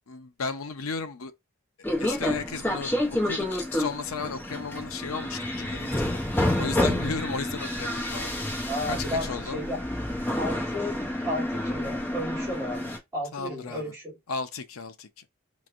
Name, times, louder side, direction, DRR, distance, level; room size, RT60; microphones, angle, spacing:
voice 1, 0.1-1.3 2.0-3.0 3.2-3.5 3.7-8.3 8.8-9.6 13.3-13.9 14.3-15.1, left 4 dB, 70° left, 0.6 m, -34 dB
sound 1, 1.8-13.0, left 1 dB, 10° left, 0.7 m, -29 dB
voice 2, 8.7-9.8 10.4-14.2, left 1 dB, 15° right, 2.7 m, -33 dB
4.3 x 3.0 x 2.5 m
head